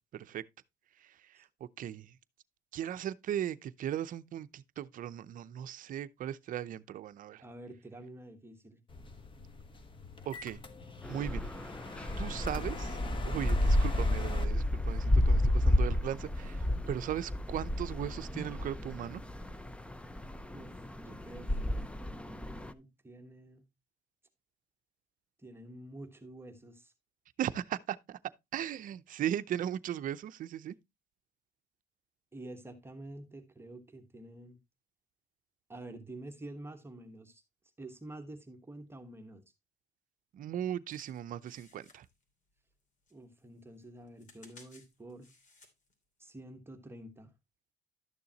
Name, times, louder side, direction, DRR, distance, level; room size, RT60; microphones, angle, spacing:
voice 1, 0.1-0.4 1.0-1.5 1.8-2.2 2.7-7.4 10.3-10.6 11.1-11.5 12.2-13.0 13.3-19.2 27.4-28.2 28.5-30.7 40.3-42.1, right 10 dB, 55° right, 0.6 m, -37 dB
voice 2, 7.4-8.8 20.5-23.7 25.4-26.9 32.3-34.6 35.7-37.4 37.8-39.4 43.1-45.3 46.2-47.3, right 1 dB, 15° right, 1.3 m, -48 dB
sound 1, 8.9-14.4, left 3 dB, 30° left, 1.2 m, -44 dB
sound 2, 11.0-22.7, left 1 dB, 5° left, 0.6 m, -31 dB
sound 3, 40.9-42.8 43.1-45.9 46.4-46.5, left 3 dB, 45° left, 2.8 m, -60 dB
12.0 x 6.8 x 2.9 m
cardioid pair, 110°, 17 cm